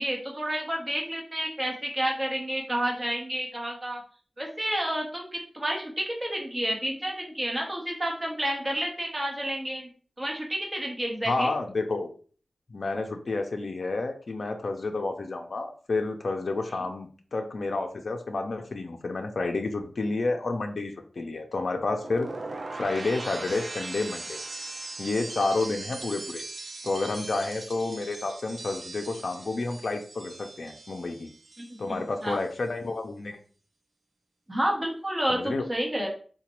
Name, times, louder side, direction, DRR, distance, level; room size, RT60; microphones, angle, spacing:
voice 1, 0.0-4.0 4.4-9.9 10.2-11.5 31.6-32.4 34.5-36.1, right 1 dB, 20° right, 0 dB, 0.9 m, -30 dB
voice 2, 11.3-12.1 12.7-22.3 22.7-24.4 25.0-26.4 26.8-31.3 31.8-33.4 35.3-35.7, left 3 dB, 60° left, 4 dB, 0.4 m, -30 dB
sound 1, 21.8-31.9 32.2-32.7, right 3 dB, 45° right, 0.4 m, -40 dB
3.9 x 2.1 x 2.9 m, 0.42 s
wide cardioid pair, 100°, 0 cm